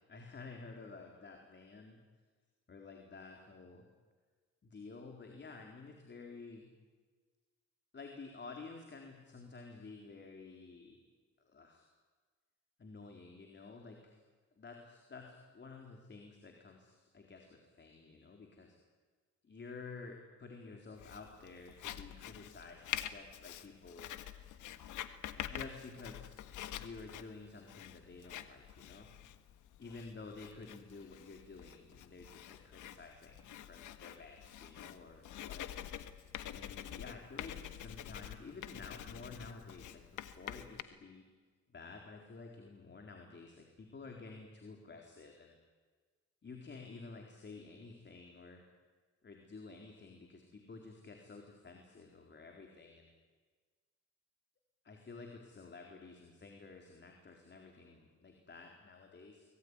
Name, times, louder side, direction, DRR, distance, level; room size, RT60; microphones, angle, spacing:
voice 1, 0.0-2.0 2.7-3.8 4.6-6.7 7.9-11.0 11.4-11.9 12.8-14.2 14.6-18.8 19.4-24.1 25.3-29.1 29.8-35.9 36.5-40.0 40.4-41.2 41.7-45.5 46.4-48.6 49.2-53.1 54.8-59.4, left 4 dB, 35° left, 2 dB, 4.1 m, -51 dB
Writing, 21.0-40.8, left 11 dB, 80° left, 1.6 m, -47 dB
24.5 x 20.5 x 9.8 m, 1.4 s
cardioid pair, 90°, 30 cm